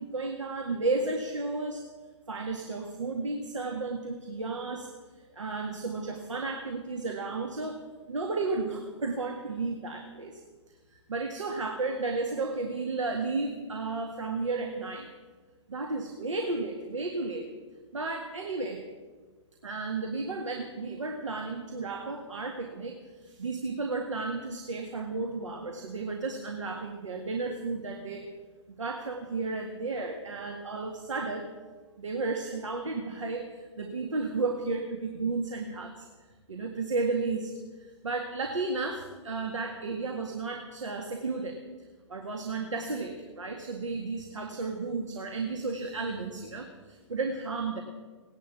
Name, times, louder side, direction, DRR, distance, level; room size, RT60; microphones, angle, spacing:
voice 1, 0.0-1.8 2.3-4.9 5.2-7.8 8.1-10.4 11.1-15.1 15.7-17.5 17.9-18.8 19.6-28.3 28.7-31.5 32.0-36.1 36.5-41.6 42.1-47.8, right 3 dB, 80° right, 3 dB, 1.9 m, -33 dB
18.0 x 11.0 x 7.2 m, 1.4 s
hypercardioid pair, 130°, 16 cm